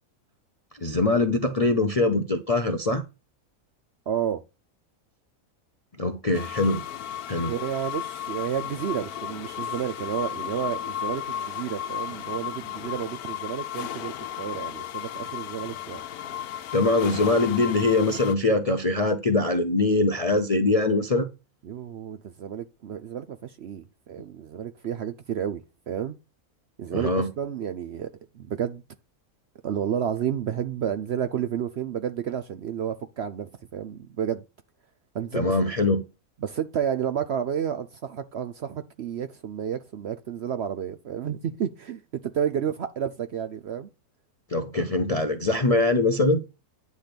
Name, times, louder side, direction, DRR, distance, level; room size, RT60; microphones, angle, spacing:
voice 1, 0.8-3.0 6.0-6.8 7.3-7.5 16.7-21.3 26.9-27.3 35.3-36.0 44.5-46.4, left 2 dB, 45° left, 0.5 m, -23 dB
voice 2, 4.1-4.4 7.5-16.0 21.6-26.2 26.8-28.1 28.3-28.8 29.6-34.4 35.1-35.5 36.4-43.9, right 9 dB, 60° right, 0.7 m, -31 dB
sound 1, 6.3-18.4, left 10 dB, 85° left, 1.2 m, -34 dB
9.5 x 3.4 x 5.9 m
omnidirectional pair, 1.6 m